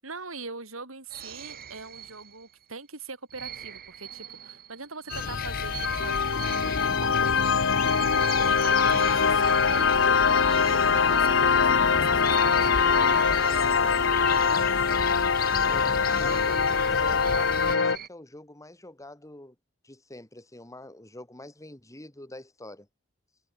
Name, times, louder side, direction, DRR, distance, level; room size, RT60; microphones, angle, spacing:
voice 1, 0.0-7.2 8.5-14.7, right 3 dB, 85° right, 7.0 m, -42 dB
sound 1, 1.1-2.7 3.3-11.9 12.2-18.1, right 9 dB, 50° right, 3.9 m, -43 dB
sound 2, 5.1-18.0, left 5 dB, 65° left, 1.3 m, -23 dB
sound 3, 5.1-17.8, left 5 dB, 45° left, 0.7 m, -35 dB
voice 2, 15.7-19.6 19.8-22.9, left 1 dB, 15° left, 2.3 m, -46 dB
head